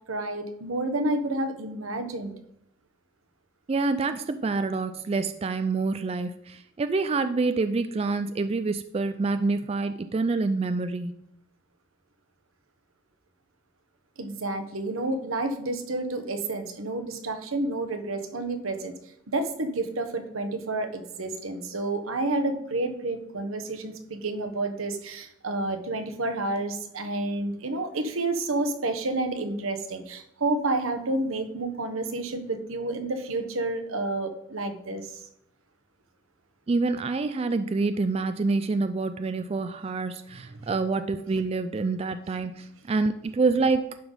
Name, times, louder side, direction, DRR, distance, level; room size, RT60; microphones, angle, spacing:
voice 1, 0.1-2.3 14.2-18.9 19.3-35.2 40.5-40.6, right 2 dB, 85° right, 7 dB, 1.1 m, -30 dB
voice 2, 3.7-11.1 36.7-44.0, right 3 dB, 30° right, 11 dB, 0.3 m, -27 dB
11.5 x 4.0 x 5.4 m, 0.75 s
head